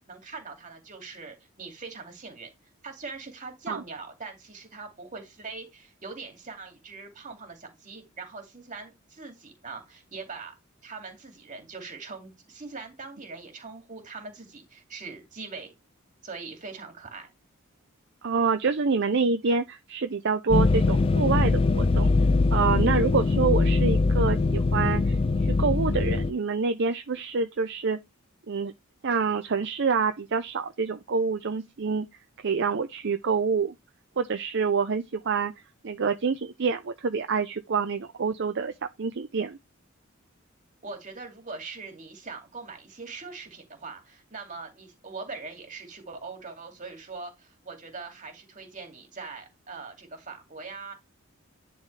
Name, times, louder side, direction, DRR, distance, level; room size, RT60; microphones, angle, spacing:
voice 1, 0.1-2.5 2.8-10.5 10.8-15.7 16.2-17.3 40.8-50.9, right 4 dB, 40° right, 2.5 m, -41 dB
voice 2, 18.2-22.1 22.5-25.1 25.4-28.0 28.5-28.7 29.0-32.1 32.4-33.7 34.2-35.5 35.8-38.7 39.0-39.6, right 5 dB, 60° right, 0.6 m, -27 dB
sound 1, 20.5-26.3, left 3 dB, 25° left, 0.3 m, -22 dB
10.5 x 3.9 x 3.3 m
head